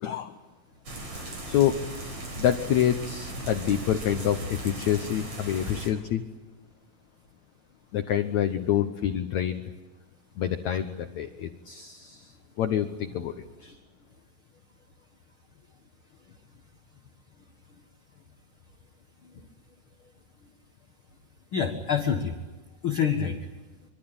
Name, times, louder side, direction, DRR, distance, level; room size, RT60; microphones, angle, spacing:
voice 1, 0.0-0.4 1.1-1.9 2.4-6.2 7.9-9.6 10.4-13.8, left 10 dB, 85° left, 8 dB, 1.6 m, -27 dB
sound 1, 0.9-5.9, right 1 dB, 40° right, 5.4 m, -37 dB
voice 2, 21.5-22.4 22.8-23.5, left 7 dB, 55° left, 4 dB, 1.5 m, -29 dB
25.5 x 25.5 x 8.8 m, 1.2 s
omnidirectional pair, 4.7 m